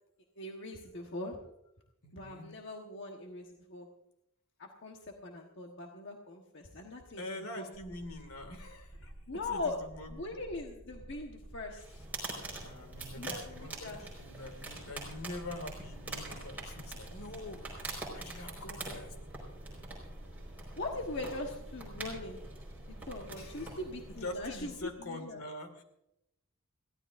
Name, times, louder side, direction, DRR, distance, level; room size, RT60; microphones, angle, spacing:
voice 1, 0.4-1.4 2.1-3.9 4.6-7.2 7.6-7.9 9.3-9.8 10.1-11.8 13.1-14.0 20.8-22.4 23.0-25.4, left 2 dB, 55° left, 2 dB, 1.3 m, -41 dB
voice 2, 2.0-2.5 7.2-9.1 9.5-10.4 12.6-19.2 23.4-23.8 24.1-25.8, left 1 dB, 80° left, 7 dB, 2.2 m, -45 dB
sound 1, 7.7-24.9, right 1 dB, 40° right, 1.4 m, -50 dB
sound 2, 11.8-24.4, right 2 dB, 10° right, 4.7 m, -45 dB
22.0 x 16.0 x 2.6 m, 0.82 s
head